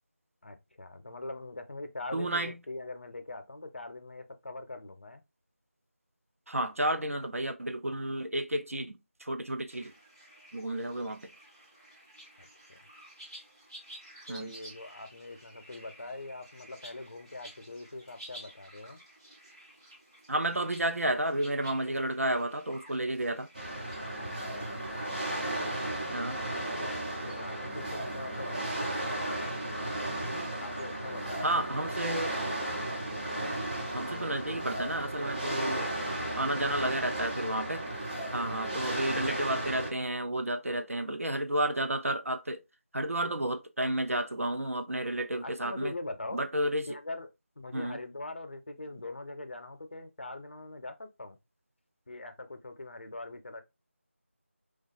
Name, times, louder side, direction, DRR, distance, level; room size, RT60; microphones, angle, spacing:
voice 1, 0.4-5.2 12.4-12.8 14.3-19.0 24.2-24.3 24.5-24.8 26.5-29.5 30.2-31.8 33.9-34.2 36.3-36.8 38.5-38.6 38.9-39.1 45.4-46.4 46.9-51.4 52.1-53.6, left 2 dB, 50° left, 0.5 m, -43 dB
voice 2, 2.1-2.5 6.5-9.9 10.5-11.3 14.3-14.5 20.3-23.5 26.1-26.4 31.4-32.3 33.9-35.9 36.4-37.8 38.3-42.6 42.9-45.9 46.3-46.9 47.7-48.0, right 1 dB, 85° right, 0.5 m, -31 dB
sound 1, 9.7-26.1, right 1 dB, 20° right, 0.6 m, -53 dB
sound 2, 23.5-39.9, right 1 dB, 40° right, 1.1 m, -34 dB
2.5 x 2.3 x 2.5 m
figure-of-eight pair, 170°, 7 cm